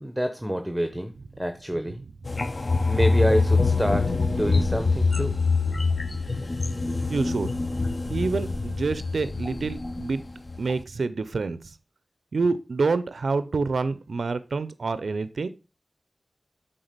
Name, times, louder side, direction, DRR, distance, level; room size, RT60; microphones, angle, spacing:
voice 1, 0.0-2.0 2.8-5.4, equal, 5° right, 7 dB, 0.8 m, -27 dB
Water synthetic glacial cave, 2.3-10.1 10.5-10.7, left 3 dB, 40° left, 0.7 m, -25 dB
voice 2, 7.1-7.5 8.1-10.2 10.6-11.8 12.3-15.5, right 4 dB, 75° right, 14 dB, 0.5 m, -27 dB
8.0 x 3.7 x 6.6 m, 0.31 s
wide cardioid pair, 95°, 0 cm